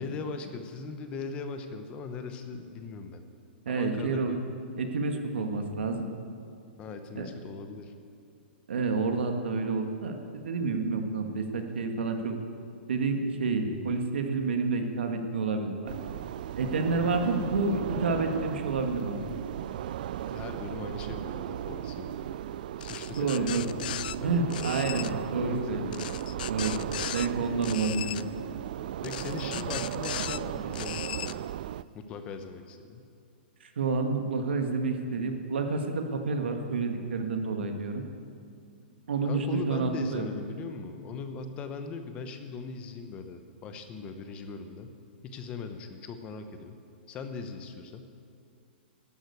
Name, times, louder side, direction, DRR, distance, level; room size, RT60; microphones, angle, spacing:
voice 1, 0.0-3.2 3.7-4.4 6.8-7.9 20.3-22.4 22.8-23.9 24.2-24.4 25.3-25.8 29.0-31.5 31.9-33.1 39.2-44.9 45.2-46.8 47.1-48.1, left 4 dB, 20° left, 8 dB, 0.9 m, -40 dB
voice 2, 3.7-4.4 4.8-6.1 7.1-7.3 8.7-12.4 12.9-15.9 16.6-19.2 23.2-23.7 24.2-26.0 26.5-26.8 27.1-28.3 33.6-38.0 39.1-40.2, right 4 dB, 90° right, 4 dB, 2.0 m, -29 dB
sound 1, 15.9-31.8, right 11 dB, 50° right, 0.4 m, -36 dB
sound 2, 22.8-24.2 24.5-25.1 25.9-27.3 27.6-28.2 29.0-30.4 30.7-31.3, left 12 dB, 50° left, 0.4 m, -37 dB
13.0 x 11.5 x 8.2 m, 2.4 s
hypercardioid pair, 165°, 6 cm